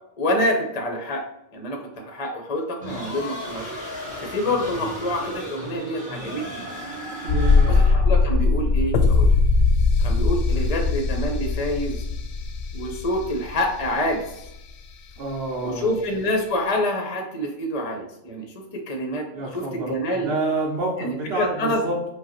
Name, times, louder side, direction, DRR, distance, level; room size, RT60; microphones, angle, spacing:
voice 1, 0.2-1.2 1.5-3.7 4.3-6.8 7.6-9.3 10.0-12.0 12.7-14.5 15.6-19.2 19.5-20.3 21.0-21.8, left 1 dB, 35° left, 2 dB, 0.6 m, -27 dB
sound 1, 2.8-8.2, equal, 5° right, 1.5 m, -35 dB
voice 2, 7.2-7.8 15.2-15.9 19.3-22.0, right 2 dB, 55° right, -1 dB, 0.9 m, -28 dB
sound 2, 7.3-14.1 14.4-14.5, left 4 dB, 65° left, 0.8 m, -20 dB
4.9 x 2.3 x 4.3 m, 0.86 s
omnidirectional pair, 1.3 m